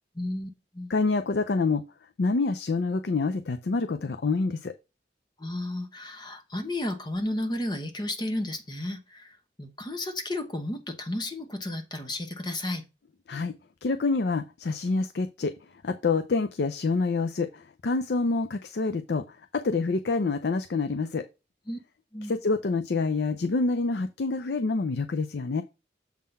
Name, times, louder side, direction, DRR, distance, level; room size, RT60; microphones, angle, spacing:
voice 1, 0.2-0.9 5.4-12.8 21.7-21.8 22.1-22.3, left 1 dB, 25° left, 1.0 m, -33 dB
voice 2, 0.9-1.8 2.2-4.7 13.3-13.5 13.8-15.5 15.8-21.2 22.2-25.6, left 3 dB, 65° left, 0.5 m, -27 dB
7.3 x 3.8 x 5.4 m
head